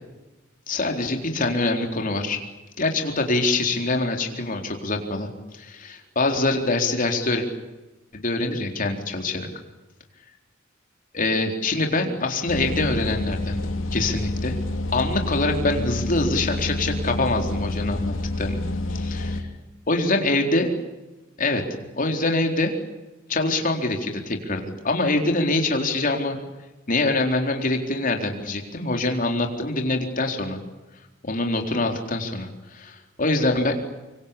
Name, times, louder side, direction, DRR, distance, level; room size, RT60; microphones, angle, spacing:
voice 1, 0.7-2.4 2.8-7.4 8.1-9.5 11.1-14.5 14.9-18.6 18.9-19.5 19.9-20.7 21.4-21.6 21.9-22.7 23.3-26.4 26.9-30.6 31.2-33.8, left 2 dB, 45° left, 3 dB, 4.1 m, -24 dB
sound 1, 12.5-19.4, left 2 dB, 75° left, 3.0 m, -28 dB
25.5 x 25.0 x 8.7 m, 1.1 s
head